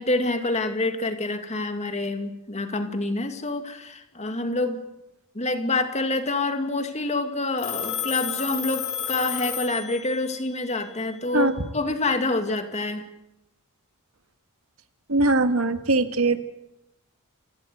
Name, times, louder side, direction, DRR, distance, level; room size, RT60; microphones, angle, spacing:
voice 1, 0.0-4.8 5.3-13.0, left 2 dB, 30° left, 7 dB, 2.4 m, -27 dB
Telephone, 7.6-10.3, left 8 dB, 75° left, 5.9 m, -31 dB
voice 2, 15.1-16.4, right 2 dB, 75° right, 9 dB, 1.7 m, -21 dB
28.0 x 17.5 x 8.1 m, 0.90 s
head